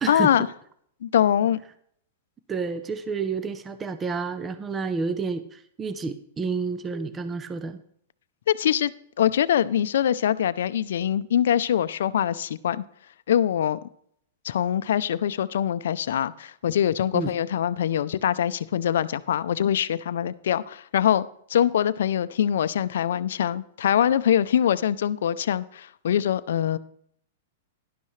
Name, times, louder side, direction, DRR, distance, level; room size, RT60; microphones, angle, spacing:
voice 1, 0.1-0.5 1.0-1.6 8.5-8.9 9.2-12.8 13.3-13.8 14.4-26.8, left 10 dB, 75° left, 0.5 m, -23 dB
voice 2, 2.5-7.8 17.1-17.3, right 4 dB, 15° right, 0.6 m, -30 dB
11.5 x 11.0 x 3.2 m
hypercardioid pair, 140°, 0 cm